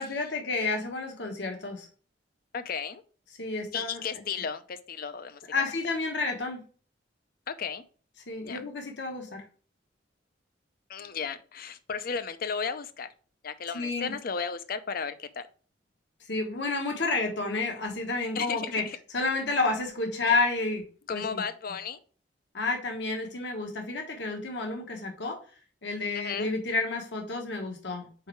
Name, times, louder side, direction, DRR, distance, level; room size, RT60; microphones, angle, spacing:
voice 1, 0.0-1.9 3.4-4.0 5.5-6.6 8.3-9.4 13.7-14.1 16.3-18.9 19.1-20.8 21.1-21.4 22.5-25.4 25.8-28.3, left 3 dB, 70° left, 1.2 m, -30 dB
voice 2, 2.5-3.0 3.7-5.6 7.5-7.8 8.4-8.6 10.9-13.1 13.4-15.4 18.3-19.0 21.1-22.0 26.1-26.5, left 6 dB, 55° left, 0.6 m, -34 dB
4.7 x 4.5 x 4.5 m
head